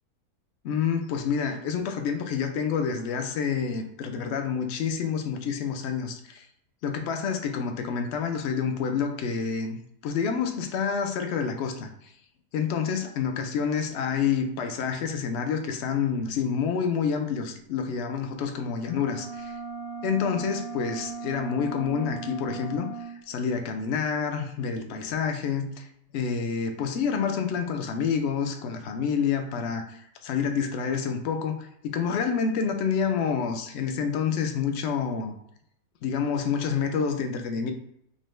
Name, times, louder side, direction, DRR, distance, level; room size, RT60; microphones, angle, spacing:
voice 1, 0.6-6.5 6.8-9.8 10.0-11.9 12.5-19.6 20.0-22.9 23.3-25.9 26.1-35.3 36.0-37.7, left 6 dB, 70° left, 5 dB, 0.6 m, -28 dB
sound 1, 18.7-23.2, right 5 dB, 90° right, 1.6 m, -37 dB
5.3 x 2.1 x 3.1 m, 0.73 s
omnidirectional pair, 1.6 m